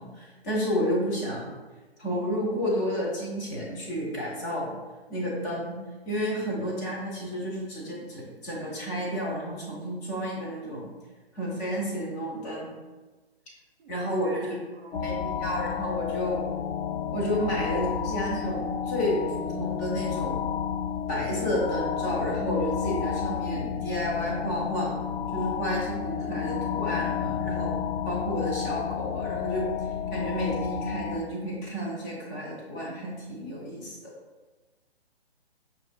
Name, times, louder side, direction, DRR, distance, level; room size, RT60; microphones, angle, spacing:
voice 1, 0.0-1.5 2.0-4.7 5.1-5.8 6.1-10.9 11.3-12.7 13.9-14.6 14.9-16.4 17.1-20.4 21.1-24.9 25.3-27.7 28.0-29.7 30.1-34.1, equal, 15° left, -4 dB, 0.5 m, -31 dB
voice 2, 13.8-15.3, right 3 dB, 65° right, 5 dB, 0.6 m, -46 dB
sound 1, 14.9-31.2, left 8 dB, 90° left, 0.5 m, -31 dB
5.4 x 2.4 x 2.2 m, 1.2 s
figure-of-eight pair, 135°, 32 cm